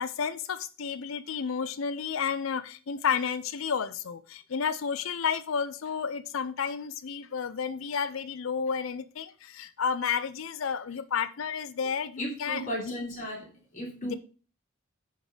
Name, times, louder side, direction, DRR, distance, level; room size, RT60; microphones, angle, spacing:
voice 1, 0.0-12.9 14.0-14.1, left 6 dB, 80° left, 13 dB, 0.5 m, -31 dB
voice 2, 12.2-13.5 13.7-14.2, equal, 40° left, -3 dB, 3.1 m, -35 dB
10.0 x 4.1 x 6.1 m, 0.38 s
head